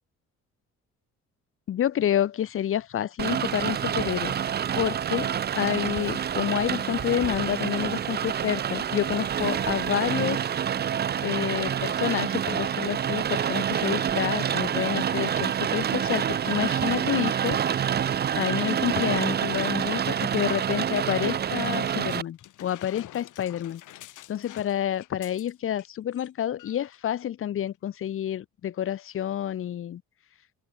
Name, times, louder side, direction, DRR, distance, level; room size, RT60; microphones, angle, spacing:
voice 1, 1.7-4.4 4.8-10.4 11.2-17.6 18.4-23.8 24.3-30.0, left 10 dB, 45° left, 0.6 m, -29 dB
Rain, 3.2-22.2, right 9 dB, 35° right, 0.5 m, -27 dB
sound 1, 21.6-25.9 26.1-26.3 26.6-27.0 27.7-27.8, left 15 dB, 85° left, 2.2 m, -48 dB
open air
cardioid pair, 90°, 30 cm